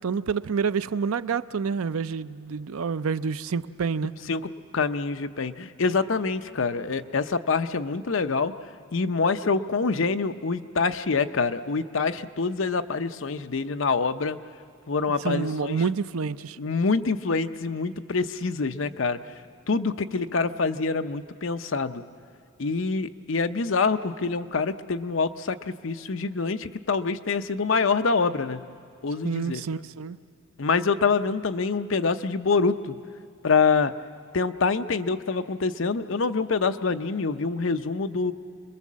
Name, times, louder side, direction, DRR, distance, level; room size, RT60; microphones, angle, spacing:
voice 1, 0.0-4.1 15.2-16.6 29.2-30.2, right 5 dB, 80° right, 0.5 m, -28 dB
voice 2, 4.3-8.5 8.9-14.4 14.9-15.8 16.6-19.2 19.7-22.0 22.6-28.7 29.0-29.6 30.6-33.0 33.4-33.9 34.3-38.3, left 4 dB, 60° left, 0.7 m, -26 dB
27.0 x 21.5 x 7.4 m
head